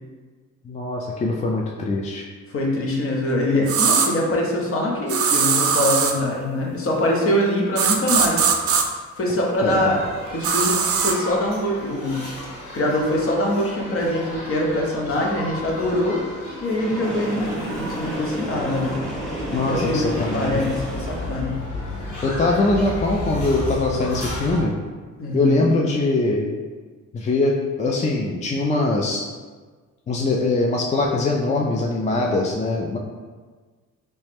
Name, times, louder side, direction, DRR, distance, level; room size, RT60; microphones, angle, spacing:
voice 1, 0.7-2.3 9.6-10.0 19.5-20.6 22.2-24.8 25.3-26.5 27.1-27.5 27.8-29.2 30.1-33.0, left 2 dB, 25° left, 0 dB, 0.3 m, -22 dB
voice 2, 2.5-8.5 9.2-10.0 10.3-12.3 12.7-16.2 16.6-19.0 19.7-21.6 25.2-25.7, left 1 dB, 45° left, -1 dB, 0.9 m, -23 dB
sound 1, 3.7-4.1 5.1-6.2 7.8-8.8 10.4-11.2, right 6 dB, 50° right, 0.5 m, -20 dB
sound 2, 9.6-24.6, left 1 dB, 85° left, 1.1 m, -34 dB
Train, 16.6-21.6, right 1 dB, ahead, 0.9 m, -31 dB
3.2 x 3.0 x 3.3 m, 1.4 s
cardioid pair, 90°, 30 cm